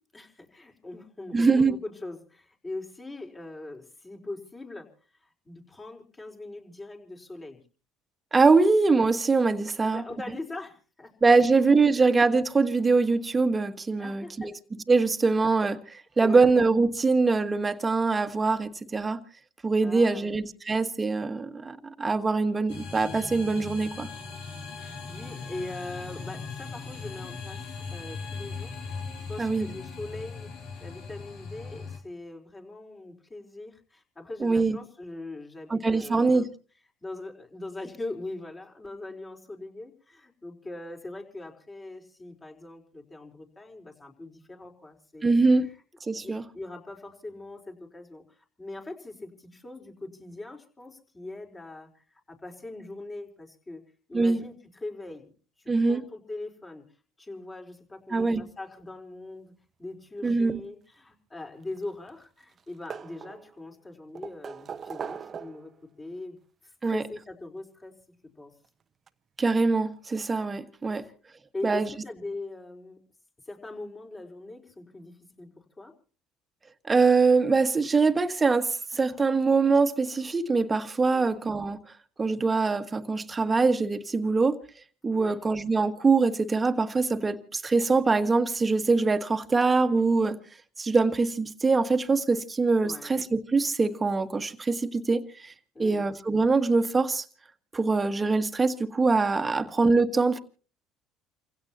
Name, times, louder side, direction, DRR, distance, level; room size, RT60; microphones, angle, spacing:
voice 1, 0.1-7.6 9.8-12.0 14.0-14.5 16.2-16.5 19.8-20.3 24.8-27.6 27.9-30.5 30.8-36.5 37.0-45.7 46.2-53.8 54.1-55.3 55.6-56.8 57.2-59.5 59.8-67.9 68.4-68.5 71.0-71.2 71.5-73.0 73.4-75.9 81.1-81.4 85.1-85.4 92.8-93.1 95.7-96.1 99.5-99.7, left 2 dB, 20° left, 4.3 m, -41 dB
voice 2, 1.3-1.8 8.3-10.0 11.2-14.5 14.9-19.2 19.6-24.1 29.4-29.7 34.4-34.8 35.7-36.4 45.2-45.7 46.1-46.4 54.1-54.4 55.7-56.0 58.1-58.4 60.2-60.6 66.8-67.0 69.4-71.0 71.6-71.9 76.9-81.8 82.2-84.6 85.0-90.4 90.8-95.5 95.8-97.2 97.7-100.4, right 4 dB, 25° right, 1.6 m, -23 dB
sound 1, 22.7-32.0, left 4 dB, 70° left, 3.6 m, -39 dB
sound 2, 61.5-62.2 62.5-63.6 64.2-65.8 67.0-67.1 68.6-68.7 69.1-69.2, right 7 dB, 40° right, 0.9 m, -40 dB
29.5 x 16.5 x 2.8 m
supercardioid pair, 80°, 0 cm